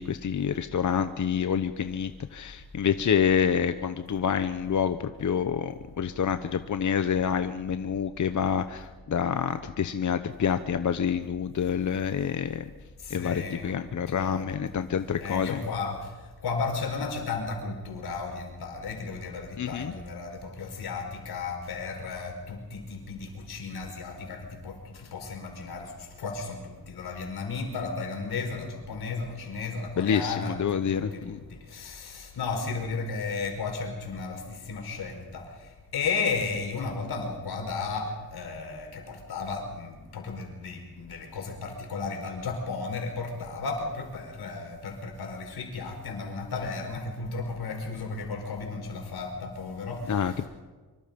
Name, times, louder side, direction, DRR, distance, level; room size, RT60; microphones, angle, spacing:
voice 1, 0.0-12.6 13.1-15.6 19.6-19.9 30.0-31.4 50.1-50.5, left 7 dB, 50° left, 9 dB, 1.0 m, -27 dB
voice 2, 13.0-13.8 14.1-14.8 15.2-16.1 16.4-50.5, left 4 dB, 85° left, 3 dB, 5.0 m, -34 dB
25.0 x 25.0 x 5.3 m, 1.3 s
cardioid pair, 90°, 37 cm